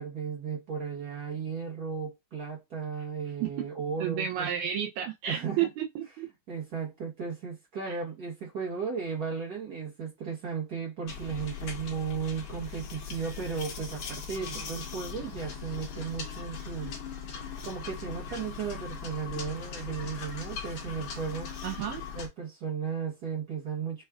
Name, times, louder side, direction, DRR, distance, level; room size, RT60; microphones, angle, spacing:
voice 1, 0.0-4.5 5.3-5.7 6.5-16.9 17.6-21.5 22.1-24.0, right 6 dB, 60° right, 1.0 m, -35 dB
voice 2, 4.0-6.3 7.9-8.0 14.4-14.6 21.6-22.0, right 10 dB, 80° right, 2.0 m, -32 dB
sound 1, 11.1-22.3, left 6 dB, 60° left, 1.4 m, -40 dB
6.3 x 2.4 x 2.4 m
omnidirectional pair, 3.5 m